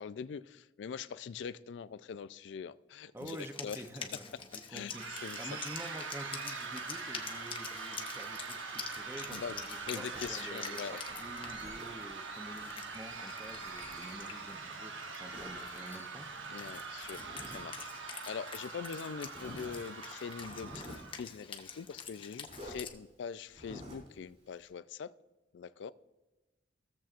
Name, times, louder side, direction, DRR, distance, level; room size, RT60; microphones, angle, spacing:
voice 1, 0.0-3.4 3.6-3.8 4.7-4.9 5.2-5.4 9.3-9.5 9.9-11.0 16.5-25.1 25.5-25.9, left 6 dB, 70° left, 16 dB, 0.3 m, -43 dB
voice 2, 3.1-16.7, right 1 dB, 15° right, 6 dB, 0.6 m, -48 dB
Wind instrument woodwind instrument, 3.2-22.9, left 6 dB, 25° left, 0.7 m, -48 dB
sound 1, 4.9-21.2, right 4 dB, 85° right, 1.1 m, -43 dB
Zipper (clothing), 8.7-10.4 11.0-12.1 12.4-14.7 15.3-15.6 17.0-17.6 17.9-18.0 18.7-18.8 19.3-19.8 20.3-21.1 22.4-22.8 23.5-24.1, equal, 40° right, 3.2 m, -50 dB
16.0 x 7.3 x 2.5 m, 1.1 s
head